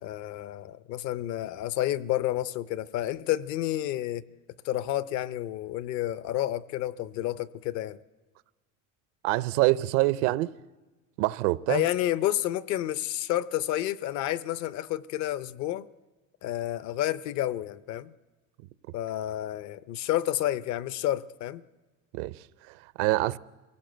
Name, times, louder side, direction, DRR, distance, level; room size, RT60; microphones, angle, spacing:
voice 1, 0.0-4.2 4.6-8.0 11.7-15.9 16.4-18.1 18.9-21.6, left 13 dB, 50° left, 0.6 m, -30 dB
voice 2, 9.2-10.5 11.2-11.8 22.1-23.4, right 19 dB, 75° right, 0.7 m, -26 dB
23.5 x 17.0 x 7.8 m
cardioid pair, 145°, 36 cm